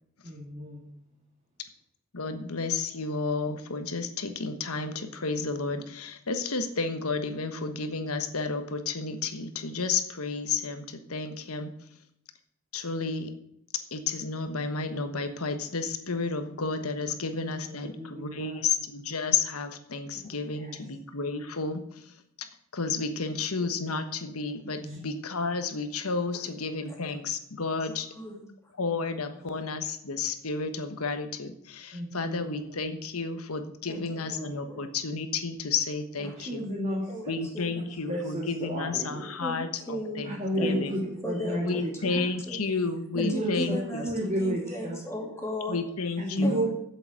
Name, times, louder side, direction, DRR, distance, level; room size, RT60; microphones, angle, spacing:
voice 1, 0.2-0.9 17.4-18.7 20.5-20.8 24.8-25.0 31.9-32.8 33.9-34.6 36.4-37.0 37.8-39.3 40.2-42.3 43.1-43.8 44.0-45.0 46.2-46.7, equal, 30° right, -3 dB, 2.1 m, -32 dB
voice 2, 2.1-11.7 12.7-13.3 13.9-21.8 22.7-28.1 28.8-36.6 37.3-40.3 40.6-40.9 41.6-44.0 45.7-46.7, left 4 dB, 85° left, 8 dB, 1.3 m, -31 dB
voice 3, 27.8-28.5 29.2-29.4 33.9-34.4 34.7-34.8 36.2-36.4 37.1-37.8 39.4-40.3 40.5-42.6 43.1-45.8 46.4-46.7, left 1 dB, 15° left, -1 dB, 2.7 m, -37 dB
7.9 x 7.9 x 8.7 m, 0.73 s
head